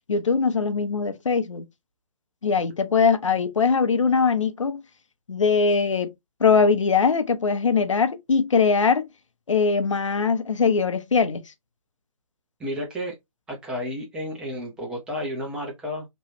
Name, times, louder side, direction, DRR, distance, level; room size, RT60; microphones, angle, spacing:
voice 1, 0.1-1.6 2.4-4.8 5.3-6.1 6.4-9.1 9.5-11.5, left 5 dB, 60° left, 0.6 m, -21 dB
voice 2, 12.6-13.1 13.5-16.1, equal, 5° right, 0.6 m, -31 dB
3.0 x 2.3 x 3.1 m
figure-of-eight pair, 135°, 18 cm